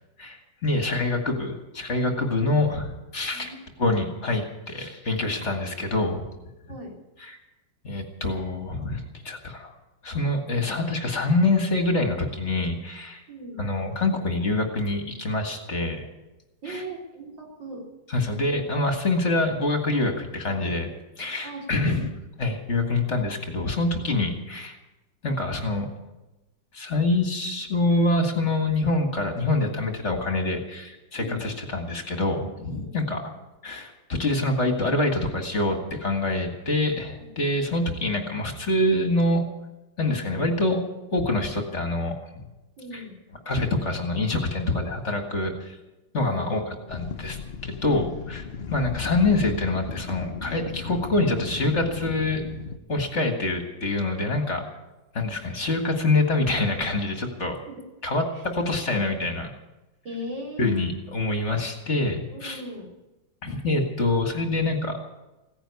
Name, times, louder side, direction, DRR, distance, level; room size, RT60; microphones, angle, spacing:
voice 1, 0.2-3.5 3.8-6.2 7.2-7.4 7.8-9.7 10.0-13.2 13.6-16.1 16.7-16.8 18.1-20.9 21.2-22.1 22.4-24.8 25.2-25.9 26.7-33.2 33.6-39.5 40.0-40.8 41.1-42.4 42.9-43.0 43.5-45.8 46.1-52.4 52.9-54.6 55.1-57.6 58.0-59.5 60.6-62.6 63.4-65.0, left 2 dB, 40° left, 4 dB, 2.0 m, -25 dB
voice 2, 13.3-13.6 16.6-17.8 18.4-18.6 21.4-22.1 31.2-31.4 32.8-33.1 37.2-37.3 42.8-43.1 46.2-47.3 47.9-48.1 48.6-48.7 53.1-53.4 54.4-54.7 57.7-57.8 58.3-58.4 60.0-60.8 62.3-62.9, right 1 dB, 90° right, -1 dB, 4.3 m, -39 dB
sound 1, 46.9-52.8, left 5 dB, 60° left, 0.6 m, -36 dB
16.5 x 10.5 x 8.3 m, 1.0 s
omnidirectional pair, 2.0 m